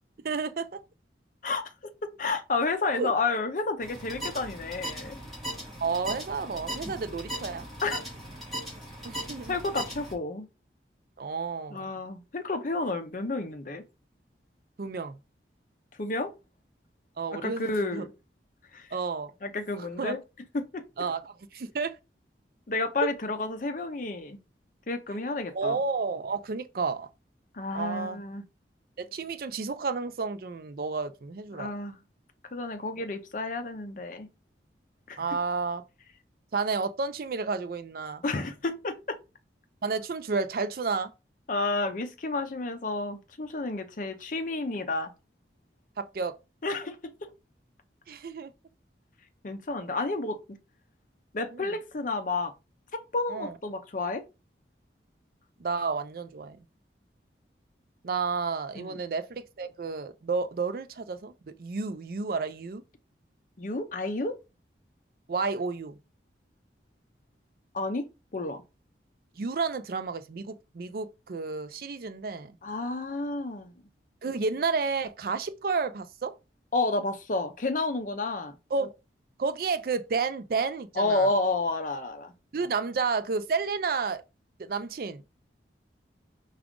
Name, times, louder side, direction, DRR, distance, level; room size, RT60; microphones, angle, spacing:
voice 1, 0.2-0.8 3.0-3.1 5.8-7.7 9.0-9.6 11.2-11.9 14.8-15.2 17.2-18.0 18.9-19.3 19.8-20.2 21.0-22.0 23.0-23.1 25.5-27.1 27.7-28.2 29.0-31.7 35.2-35.8 36.5-38.2 39.8-41.1 46.0-46.4 48.1-48.5 51.5-51.7 53.3-53.5 55.6-56.6 58.0-61.3 61.6-62.8 65.3-66.0 69.4-72.6 74.2-76.3 78.7-78.9 79.4-81.3 82.5-84.2 84.6-85.2, right 4 dB, 55° right, 0.4 m, -31 dB
voice 2, 2.2-5.2 7.8-8.0 9.5-10.5 11.7-13.8 16.0-16.3 17.3-18.1 18.7-18.9 19.4-20.2 20.5-20.9 22.7-24.4 24.9-25.8 27.5-28.4 31.5-32.0 32.5-34.3 35.1-35.2 38.2-39.2 41.5-45.1 46.6-47.3 49.4-50.6 51.3-52.5 52.9-54.2 58.8-59.0 63.6-64.4 67.7-68.1 68.3-68.6 72.6-73.7 76.7-78.6 81.0-82.3, left 3 dB, 45° left, 0.5 m, -30 dB
sound 1, 3.8-10.1, right 1 dB, ahead, 1.6 m, -38 dB
4.8 x 2.4 x 3.6 m
head